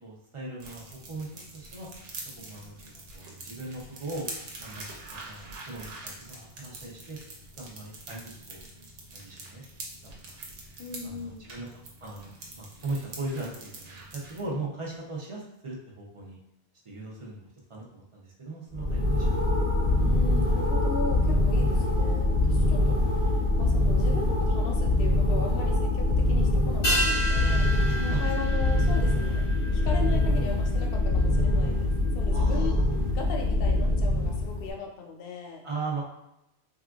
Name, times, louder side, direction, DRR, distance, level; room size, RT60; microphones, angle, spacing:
voice 1, 0.0-1.9 2.4-2.8 3.1-4.2 4.6-7.2 7.6-8.7 9.1-9.6 10.0-10.4 11.0-11.7 12.0-16.4 16.8-19.5 27.8-28.2 32.3-32.9 35.6-36.0, right 2 dB, 35° right, -4 dB, 0.6 m, -38 dB
sound 1, 0.6-14.4, right 2 dB, 80° right, 1.0 m, -44 dB
voice 2, 10.8-11.4 19.9-27.7 28.2-32.8 33.1-35.6, left 4 dB, 60° left, 1 dB, 0.7 m, -38 dB
sound 2, 18.7-34.7, left 2 dB, 15° left, 0.5 m, -24 dB
sound 3, 26.8-31.6 31.8-31.9, equal, 80° left, 1.5 m, -32 dB
3.6 x 2.4 x 2.3 m, 0.81 s
omnidirectional pair, 1.2 m